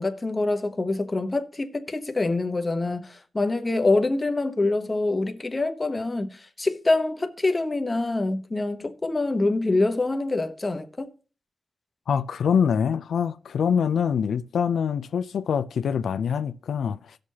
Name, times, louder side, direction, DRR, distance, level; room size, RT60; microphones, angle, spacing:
voice 1, 0.0-11.1, left 2 dB, 20° left, 0.9 m, -25 dB
voice 2, 12.1-17.2, left 7 dB, 90° left, 0.4 m, -24 dB
17.5 x 6.4 x 2.8 m
wide cardioid pair, 135°, 0 cm